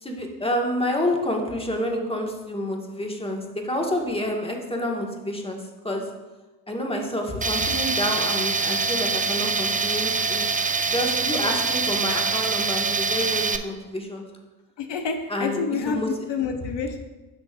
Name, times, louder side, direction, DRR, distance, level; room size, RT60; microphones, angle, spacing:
voice 1, 0.0-5.6 5.8-6.0 6.7-10.5 10.9-14.2 15.3-16.3 16.6-16.7, left 1 dB, 10° left, 1 dB, 1.7 m, -28 dB
Tools, 7.4-13.6, right 4 dB, 15° right, 0.5 m, -24 dB
voice 2, 14.8-17.0, left 5 dB, 60° left, 4 dB, 1.0 m, -28 dB
10.0 x 6.1 x 2.6 m, 1.2 s
hypercardioid pair, 50°, 49 cm